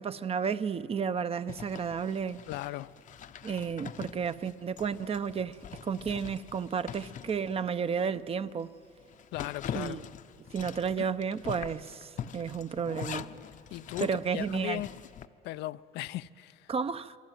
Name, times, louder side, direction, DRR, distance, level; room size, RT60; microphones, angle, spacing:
voice 1, 0.0-2.4 3.4-8.7 9.7-10.0 10.5-13.3 14.0-14.8 16.7-17.2, right 6 dB, 35° right, 0.8 m, -32 dB
Zipper (clothing), 1.5-8.1 8.5-8.6 9.0-15.3, left 9 dB, 50° left, 0.8 m, -44 dB
voice 2, 2.5-2.9 9.3-10.0 13.7-14.9 15.4-16.7, left 15 dB, 80° left, 0.6 m, -37 dB
26.5 x 23.5 x 9.2 m
cardioid pair, 110°, 17 cm